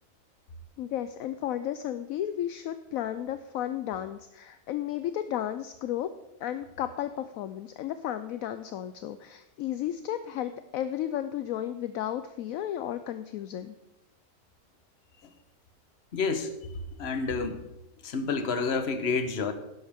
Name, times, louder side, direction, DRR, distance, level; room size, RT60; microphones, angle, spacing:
voice 1, 0.8-6.1 6.4-13.7, left 11 dB, 70° left, 11 dB, 0.9 m, -33 dB
voice 2, 16.1-16.5 17.0-17.6 18.0-19.5, left 4 dB, 45° left, 9 dB, 1.2 m, -29 dB
12.0 x 10.5 x 3.6 m, 0.93 s
omnidirectional pair, 1.6 m